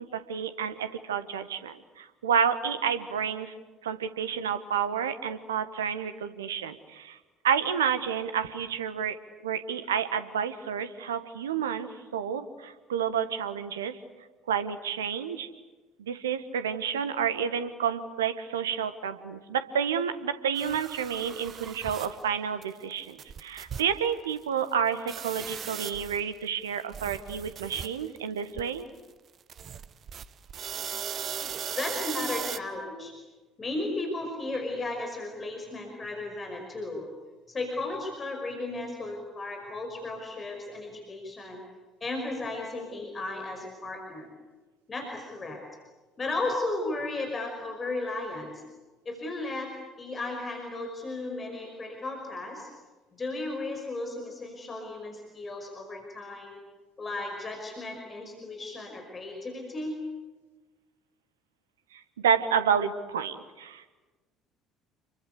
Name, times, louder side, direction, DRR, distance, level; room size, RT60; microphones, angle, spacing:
voice 1, 0.0-3.5 3.8-7.2 7.4-9.2 9.4-14.0 14.5-15.5 16.0-28.9 61.9-63.8, right 7 dB, 75° right, 11 dB, 1.4 m, -30 dB
sound 1, 20.6-22.2 22.6-22.7 22.9-23.0 23.2-24.0 24.2-24.3 25.1-26.3 26.7-28.2 28.6-28.8 29.5-32.6, right 8 dB, 40° right, 1.0 m, -38 dB
voice 2, 31.7-33.1 33.6-37.1 37.5-41.6 42.0-44.3 44.9-45.6 46.2-48.6 49.1-49.7 50.0-52.7 53.2-56.6 57.0-60.0, left 2 dB, 25° left, 3 dB, 5.4 m, -35 dB
29.0 x 23.0 x 8.3 m, 1.2 s
figure-of-eight pair, 55°, 0 cm